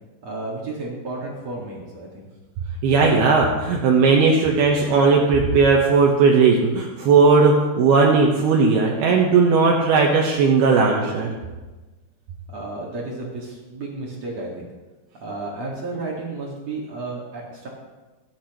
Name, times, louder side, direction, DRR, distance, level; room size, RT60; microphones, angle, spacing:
voice 1, 0.2-2.3 12.5-14.7 15.2-17.7, right 2 dB, 50° right, -4 dB, 2.5 m, -32 dB
voice 2, 2.8-11.3, right 4 dB, 75° right, -1 dB, 2.9 m, -17 dB
23.0 x 8.9 x 3.0 m, 1.2 s
omnidirectional pair, 5.0 m